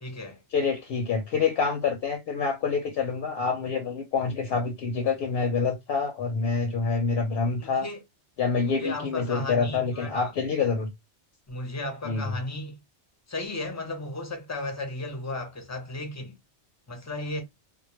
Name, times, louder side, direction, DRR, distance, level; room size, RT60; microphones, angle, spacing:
voice 1, 0.0-0.4 7.6-8.0 8.6-10.3 11.5-12.8 13.3-16.4 16.9-17.4, left 2 dB, 20° left, 0.5 m, -35 dB
voice 2, 0.5-7.9 8.4-10.9 12.0-12.3, left 5 dB, 65° left, 0.7 m, -27 dB
2.2 x 2.2 x 2.9 m
omnidirectional pair, 1.2 m